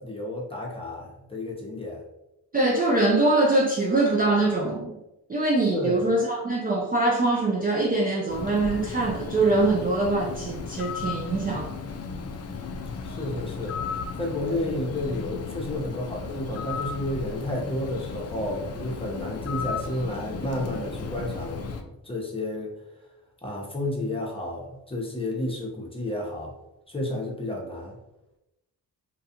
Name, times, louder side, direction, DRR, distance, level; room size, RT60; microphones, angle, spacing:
voice 1, 0.0-2.0 5.7-6.1 13.0-13.8 14.2-22.7 23.4-26.5 26.9-28.0, left 1 dB, 15° left, -2 dB, 0.8 m, -31 dB
voice 2, 2.5-4.9 5.3-11.7, right 2 dB, 20° right, -2 dB, 0.4 m, -23 dB
Bird, 8.3-21.8, left 5 dB, 40° left, 0.4 m, -35 dB
2.3 x 2.3 x 2.8 m, 0.93 s
supercardioid pair, 50°, 43 cm